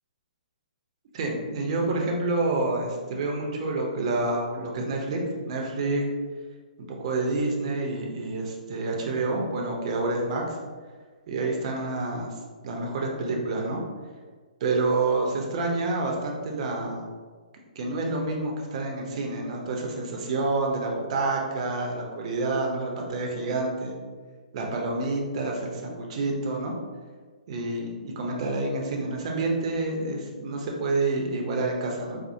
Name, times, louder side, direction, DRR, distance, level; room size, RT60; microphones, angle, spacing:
voice 1, 1.1-5.2 5.5-6.0 6.9-10.6 11.3-12.4 12.6-13.8 14.6-17.1 17.8-23.9 24.5-26.7 27.5-32.2, right 2 dB, 45° right, 0 dB, 0.7 m, -28 dB
4.3 x 2.1 x 2.6 m, 1.5 s
hypercardioid pair, 145°, 5 cm